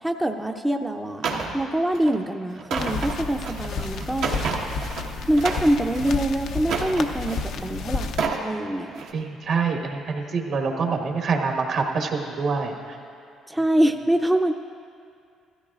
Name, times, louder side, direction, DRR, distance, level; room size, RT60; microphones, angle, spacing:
voice 1, 0.0-1.2 1.5-4.3 5.3-8.1 8.4-9.0 13.5-14.5, right 1 dB, 10° right, 4 dB, 0.5 m, -24 dB
sound 1, 1.2-1.5 1.9-2.2 2.5-5.0 5.3-6.1 6.6-7.5 8.0-8.5 8.9-9.1, right 4 dB, 80° right, 1.2 m, -30 dB
sound 2, 2.8-8.3, left 4 dB, 70° left, 0.6 m, -31 dB
voice 2, 9.1-13.0, right 4 dB, 65° right, 2 dB, 1.4 m, -26 dB
16.0 x 13.5 x 2.4 m, 2.4 s
supercardioid pair, 70°, 0 cm